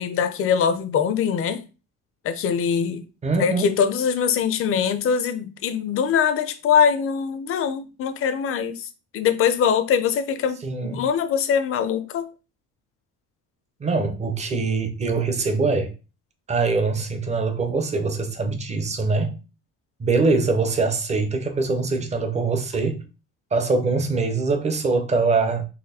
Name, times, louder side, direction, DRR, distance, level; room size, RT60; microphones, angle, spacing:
voice 1, 0.0-1.6 2.2-3.0 3.4-12.3, left 7 dB, 40° left, 0.6 m, -22 dB
voice 2, 3.2-3.7 10.6-11.0 13.8-15.9 16.5-19.4 20.0-23.0 23.5-25.6, right 3 dB, 20° right, 0.6 m, -23 dB
4.2 x 3.0 x 4.0 m
cardioid pair, 175°, 33 cm